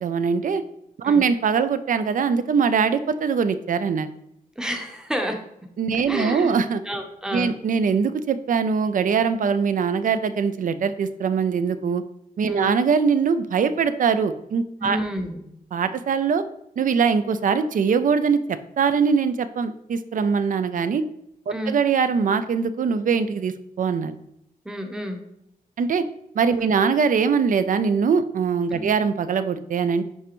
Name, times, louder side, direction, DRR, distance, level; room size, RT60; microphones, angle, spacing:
voice 1, 0.0-0.6 1.0-4.1 5.8-6.8 7.3-12.0 12.4-15.0 15.7-16.4 16.8-18.4 18.8-21.0 21.5-24.1 25.8-26.1 26.3-30.0, right 6 dB, 65° right, 12 dB, 0.4 m, -22 dB
voice 2, 4.6-5.4 6.1-6.5 6.8-7.5 12.5-12.7 14.8-15.5 21.5-21.8 24.6-25.2 26.6-26.7 28.7-28.9, equal, 5° right, 4 dB, 0.7 m, -30 dB
10.0 x 3.3 x 3.0 m, 0.78 s
wide cardioid pair, 145°, 15 cm